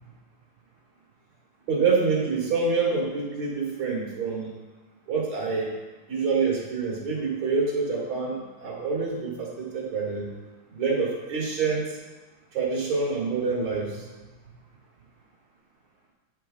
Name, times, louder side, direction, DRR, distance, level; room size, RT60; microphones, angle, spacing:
voice 1, 1.7-4.5 5.1-5.7 6.1-10.3 10.7-12.0 12.5-14.0, right 4 dB, 45° right, -4 dB, 1.8 m, -26 dB
10.5 x 9.1 x 2.3 m, 1.2 s
omnidirectional pair, 4.2 m